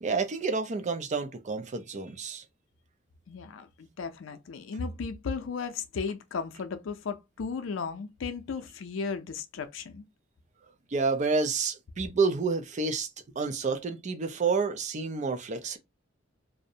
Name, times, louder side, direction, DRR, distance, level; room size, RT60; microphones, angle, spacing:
voice 1, 0.0-2.4 10.9-13.1 13.3-15.8, right 4 dB, 40° right, 0.4 m, -29 dB
voice 2, 3.3-10.1, left 5 dB, 85° left, 0.4 m, -35 dB
2.5 x 2.1 x 2.6 m
head